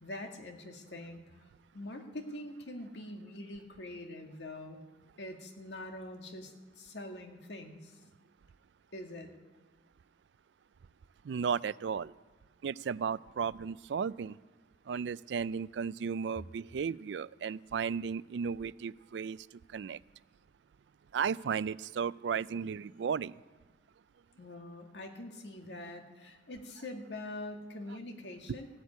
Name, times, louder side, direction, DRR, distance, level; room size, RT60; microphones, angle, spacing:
voice 1, 0.0-1.2 1.7-4.8 5.2-8.0 8.9-9.3 24.4-28.7, left 1 dB, 85° left, 4 dB, 1.9 m, -44 dB
voice 2, 11.2-12.1 12.6-14.4 14.9-19.4 19.7-20.0 21.1-23.3, right 6 dB, 85° right, 20 dB, 0.4 m, -34 dB
16.0 x 8.1 x 9.5 m, 1.2 s
head